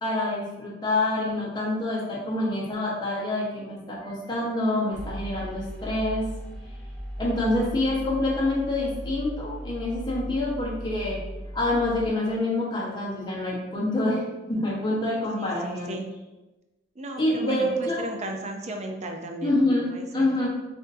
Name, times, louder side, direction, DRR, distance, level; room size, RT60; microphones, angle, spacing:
voice 1, 0.0-6.3 7.2-11.2 11.5-14.2 14.5-16.0 17.2-18.1 19.4-20.5, left 1 dB, 25° left, -5 dB, 1.1 m, -26 dB
sound 1, 4.9-12.1, equal, ahead, 0.7 m, -37 dB
voice 2, 15.4-16.2 17.0-20.4, right 1 dB, 35° right, 3 dB, 0.5 m, -36 dB
5.9 x 2.6 x 2.6 m, 1.1 s
head